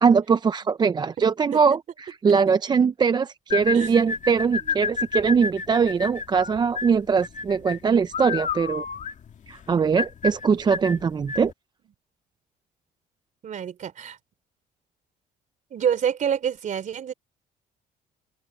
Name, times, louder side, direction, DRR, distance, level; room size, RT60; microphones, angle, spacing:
voice 1, 0.0-8.8 9.5-11.5, right 6 dB, 25° right, 0.4 m, -21 dB
sound 1, 3.5-11.5, left 6 dB, 45° left, 1.9 m, -31 dB
voice 2, 3.7-4.1 4.7-4.8 13.4-14.2 15.7-17.1, right 8 dB, 50° right, 3.3 m, -27 dB
open air
cardioid pair, 110°, 17 cm